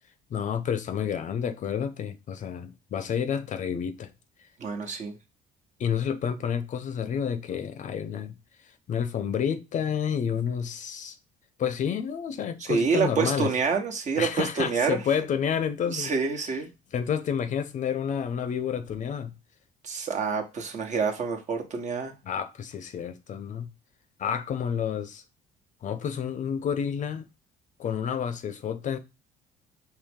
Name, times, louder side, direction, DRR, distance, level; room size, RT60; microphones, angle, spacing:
voice 1, 0.3-4.1 5.8-8.3 8.9-11.2 11.6-13.5 14.2-16.1 16.9-19.3 22.2-23.7 24.2-25.2 25.8-27.3 27.8-29.0, left 8 dB, 45° left, 0.6 m, -29 dB
voice 2, 4.6-5.1 12.6-15.0 15.9-16.7 19.8-22.1, right 5 dB, 45° right, 1.2 m, -27 dB
4.7 x 3.1 x 3.5 m
cardioid pair, 110°, 17 cm